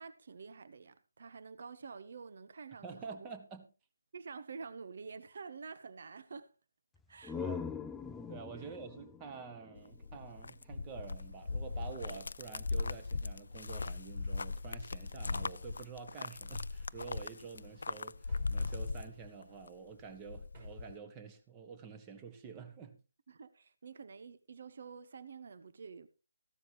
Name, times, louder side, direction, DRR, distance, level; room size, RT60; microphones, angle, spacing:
voice 1, 0.0-3.3 4.1-6.5 7.1-7.4 8.6-8.7 23.3-26.1, right 5 dB, 55° right, 1.0 m, -48 dB
voice 2, 2.8-3.6 7.3-7.7 8.3-23.0, right 5 dB, 20° right, 1.7 m, -48 dB
sound 1, 6.9-10.6, left 6 dB, 5° left, 0.5 m, -43 dB
sound 2, 9.8-19.7 20.0-20.9, left 3 dB, 65° left, 0.5 m, -39 dB
sound 3, 18.3-19.0 20.5-21.0, right 3 dB, 35° right, 6.4 m, -61 dB
15.0 x 12.5 x 3.1 m
figure-of-eight pair, 155°, 0 cm